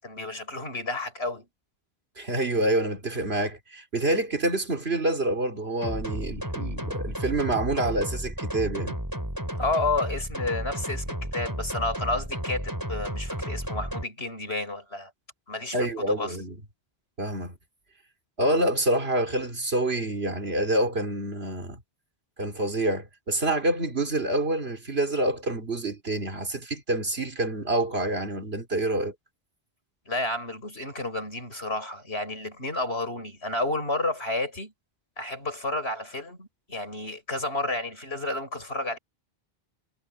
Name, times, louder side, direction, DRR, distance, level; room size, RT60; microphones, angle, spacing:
voice 1, 0.0-1.5 9.6-15.1 15.5-16.4 30.1-34.7 35.2-39.0, left 2 dB, 85° left, 7.4 m, -31 dB
voice 2, 2.2-9.0 15.7-16.6 17.2-17.6 18.4-21.8 22.4-29.1, right 1 dB, 80° right, 3.6 m, -27 dB
sound 1, 5.8-14.0, equal, 20° right, 6.1 m, -33 dB
omnidirectional pair, 1.0 m